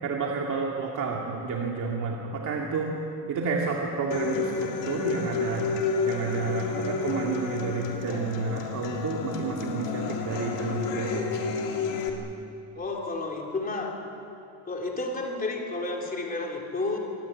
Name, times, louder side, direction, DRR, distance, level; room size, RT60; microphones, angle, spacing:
voice 1, 0.0-2.9 3.3-5.7 6.0-11.2, right 4 dB, 40° right, -1 dB, 2.5 m, -30 dB
Human voice / Acoustic guitar, 4.1-12.1, left 5 dB, 65° left, 3.0 m, -31 dB
voice 2, 12.8-13.9 14.6-17.0, left 3 dB, 20° left, 0 dB, 3.5 m, -31 dB
26.0 x 18.0 x 9.8 m, 2.8 s
cardioid pair, 170°, 45 cm